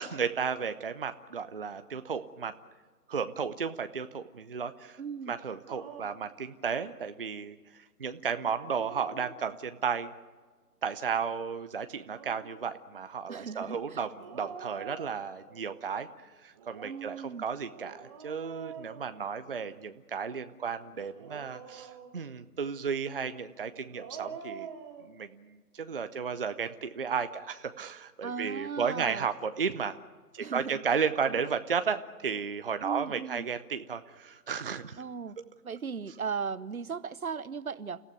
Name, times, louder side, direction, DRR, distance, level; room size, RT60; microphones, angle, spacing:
voice 1, 0.0-2.5 3.1-5.0 5.3-10.1 10.8-24.7 25.0-30.0 30.3-35.0, right 6 dB, 35° right, 10 dB, 0.7 m, -34 dB
voice 2, 5.0-5.4 13.3-14.0 16.8-17.4 28.2-29.3 30.4-30.8 31.2-31.3 32.8-33.5 35.0-35.3 35.6-38.0, right 6 dB, 60° right, 16 dB, 1.0 m, -37 dB
Dog, 5.7-6.3 8.4-9.8 11.9-12.6 14.1-15.6 16.5-19.7 21.0-22.4 23.7-25.1, right 7 dB, 20° right, 1.3 m, -46 dB
29.0 x 15.5 x 9.2 m, 1.4 s
figure-of-eight pair, 150°, 48 cm